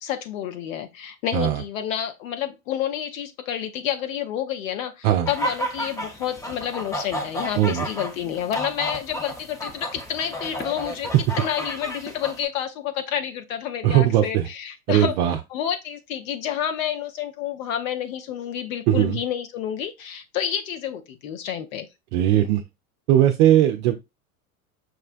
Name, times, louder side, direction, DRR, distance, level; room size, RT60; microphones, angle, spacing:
voice 1, 0.0-11.1 11.4-21.9, left 9 dB, 65° left, 0.7 m, -29 dB
sound 1, 5.3-12.4, equal, 10° left, 0.6 m, -32 dB
voice 2, 13.8-14.5 14.9-15.4 18.9-19.2 22.1-22.6 23.1-24.0, right 12 dB, 50° right, 0.5 m, -19 dB
6.2 x 2.1 x 2.4 m
hypercardioid pair, 90°, 43 cm